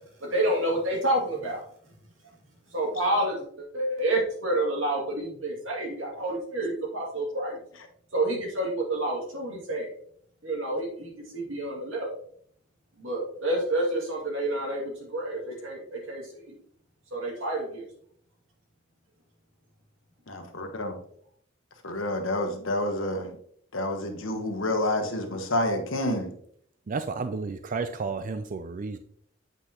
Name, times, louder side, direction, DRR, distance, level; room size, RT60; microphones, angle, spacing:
voice 1, 0.2-1.6 2.7-7.6 8.1-9.9 10.4-12.1 13.0-16.6 17.1-17.9, right 1 dB, 85° right, -1 dB, 2.4 m, -29 dB
voice 2, 20.3-20.9 21.8-23.3 23.7-26.3, left 1 dB, 80° left, 5 dB, 1.2 m, -28 dB
voice 3, 26.9-29.0, right 4 dB, 45° right, 9 dB, 0.4 m, -32 dB
8.1 x 5.5 x 2.9 m, 0.63 s
head